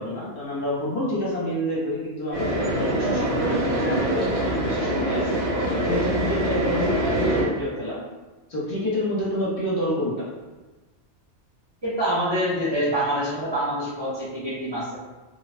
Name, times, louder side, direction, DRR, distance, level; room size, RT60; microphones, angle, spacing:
voice 1, 0.0-5.4 5.8-8.0 8.5-10.3, equal, 55° left, -6 dB, 0.9 m, -28 dB
sound 1, 2.3-7.4, right 1 dB, 75° right, 1.3 m, -24 dB
voice 2, 11.8-15.1, equal, 35° right, -9 dB, 0.4 m, -26 dB
2.6 x 2.1 x 2.4 m, 1.2 s
omnidirectional pair, 1.2 m